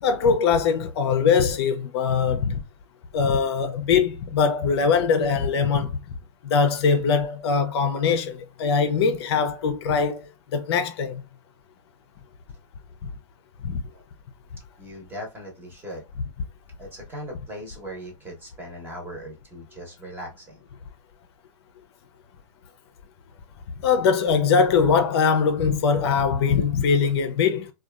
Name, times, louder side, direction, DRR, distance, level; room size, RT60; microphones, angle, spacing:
voice 1, 0.0-2.6 3.1-6.0 6.4-11.2 13.6-13.8 23.8-27.7, left 6 dB, 55° left, 0.5 m, -22 dB
voice 2, 14.8-16.0 16.8-20.6, equal, 10° right, 0.9 m, -39 dB
2.7 x 2.3 x 2.3 m
hypercardioid pair, 135°, 16 cm